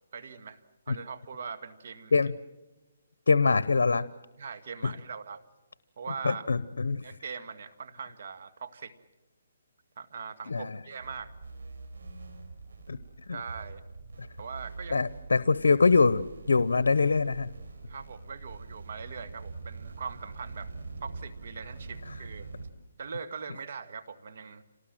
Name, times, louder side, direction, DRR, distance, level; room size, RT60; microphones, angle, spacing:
voice 1, 0.1-0.6 0.9-2.1 4.4-5.4 6.0-6.5 7.0-8.9 10.0-11.3 13.3-13.8 14.4-15.0 17.9-20.7 21.0-22.5 23.0-24.6, right 6 dB, 60° right, 9 dB, 1.8 m, -41 dB
voice 2, 3.3-4.1 4.8-4.9 6.2-7.1 10.5-10.8 12.9-13.0 13.3-13.4 14.2-14.3 14.9-17.5 22.1-22.2, left 4 dB, 90° left, 17 dB, 0.8 m, -24 dB
sound 1, 11.0-22.7, right 3 dB, 85° right, 4.6 m, -44 dB
27.0 x 19.0 x 7.6 m, 1.1 s
hypercardioid pair, 155°, 0 cm